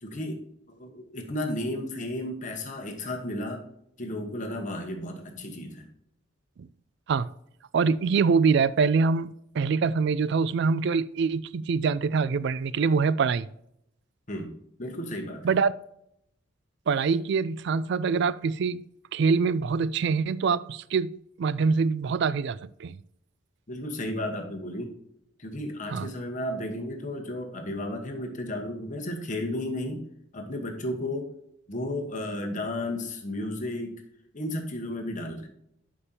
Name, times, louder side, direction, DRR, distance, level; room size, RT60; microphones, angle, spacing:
voice 1, 0.0-3.6 4.0-5.9 14.3-14.5 14.8-15.5 23.7-24.9 25.4-30.0 30.3-31.3 31.7-34.0 34.3-35.5, left 1 dB, 40° left, 1.2 m, -33 dB
voice 2, 7.7-13.5 15.4-15.7 16.9-18.9 19.1-23.0 25.9-26.1, right 5 dB, 60° right, 0.3 m, -24 dB
11.0 x 5.1 x 2.8 m
head